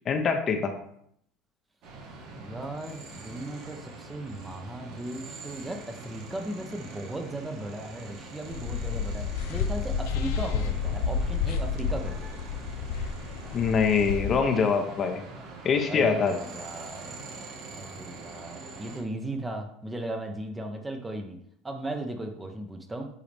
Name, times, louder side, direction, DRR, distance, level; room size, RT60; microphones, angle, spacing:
voice 1, 0.1-0.7 13.5-15.2 15.6-16.3, left 5 dB, 40° left, 5 dB, 0.9 m, -24 dB
sound 1, 1.8-19.0, right 3 dB, 60° right, 1.7 m, -44 dB
voice 2, 2.4-12.3 15.9-17.2 17.7-21.4 21.6-23.1, right 1 dB, 15° right, 4 dB, 1.0 m, -37 dB
sound 2, 8.5-14.4, left 6 dB, 75° left, 0.5 m, -30 dB
8.3 x 3.8 x 3.5 m, 0.70 s
hypercardioid pair, 85°, 0 cm